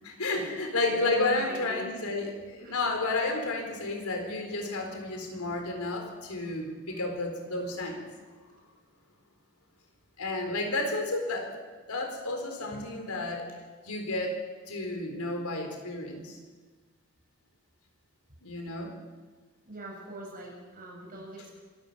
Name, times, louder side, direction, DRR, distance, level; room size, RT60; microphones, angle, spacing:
voice 1, 0.0-8.1 10.2-11.6 11.9-13.4 13.8-14.4 14.7-16.4 18.4-18.9, left 2 dB, 80° left, 3 dB, 4.2 m, -31 dB
voice 2, 1.1-2.0 2.6-2.8 19.6-21.6, right 1 dB, 40° right, -2 dB, 7.0 m, -43 dB
25.5 x 13.0 x 8.0 m, 1.4 s
head